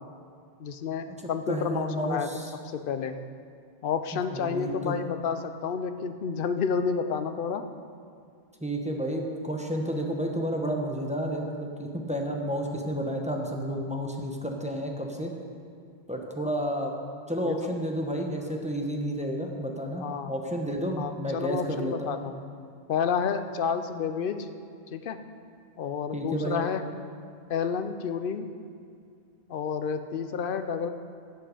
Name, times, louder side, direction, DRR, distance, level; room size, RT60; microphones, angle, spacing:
voice 1, 0.6-2.3 2.7-3.2 3.8-7.6 17.4-17.6 20.0-20.3 21.0-22.3 22.9-24.5 24.9-25.2 25.8-26.8 27.5-28.5 29.5-30.9, left 6 dB, 60° left, 9 dB, 0.8 m, -30 dB
voice 2, 1.5-2.5 4.1-5.0 8.6-15.3 16.1-16.9 17.3-22.2 26.1-26.6, equal, 5° right, 1 dB, 0.9 m, -31 dB
13.0 x 7.7 x 5.0 m, 2.3 s
omnidirectional pair, 1.1 m